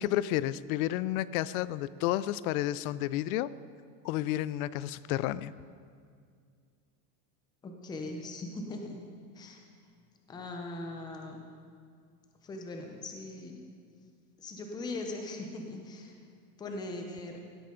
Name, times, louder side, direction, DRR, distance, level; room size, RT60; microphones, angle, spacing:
voice 1, 0.0-3.5 4.0-5.5, left 14 dB, 75° left, 18 dB, 0.5 m, -31 dB
voice 2, 7.6-9.0 9.3-9.6 10.3-11.4 12.4-13.6 14.4-16.1 16.6-17.4, left 2 dB, 10° left, 2 dB, 0.6 m, -40 dB
16.5 x 8.9 x 3.8 m, 2.2 s
supercardioid pair, 165°, 43 cm